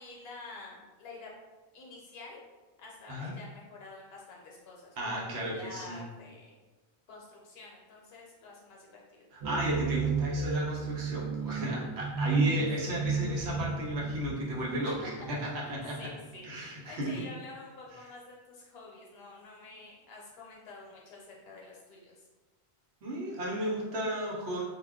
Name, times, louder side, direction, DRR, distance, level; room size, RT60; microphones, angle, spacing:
voice 1, 0.0-1.3 1.7-2.4 2.8-6.6 7.1-9.3 12.5-12.7 14.8-22.3, left 3 dB, 65° left, -3 dB, 0.9 m, -48 dB
voice 2, 5.0-6.0 9.3-15.4 15.7-15.9 16.4-17.1 23.0-24.6, equal, 75° right, -4 dB, 1.0 m, -34 dB
sound 1, 9.4-16.0, right 5 dB, 55° right, 0.6 m, -33 dB
2.4 x 2.1 x 3.5 m, 1.2 s
omnidirectional pair, 1.1 m